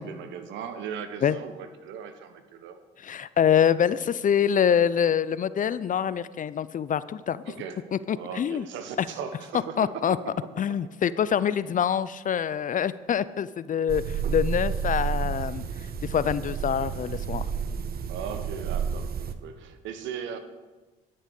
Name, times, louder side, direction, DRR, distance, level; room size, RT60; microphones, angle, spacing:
voice 1, 0.0-2.8 7.5-7.8 8.1-10.5 10.8-10.9 18.1-20.4, right 7 dB, 65° right, 9 dB, 1.5 m, -38 dB
voice 2, 3.0-7.4 7.9-8.6 9.0-9.1 9.8-10.2 10.6-15.6 16.0-17.5, left 8 dB, 40° left, 17 dB, 0.6 m, -25 dB
sound 1, 13.9-19.3, right 7 dB, 50° right, 1.1 m, -30 dB
11.5 x 10.0 x 6.6 m, 1.2 s
hypercardioid pair, 55°, 21 cm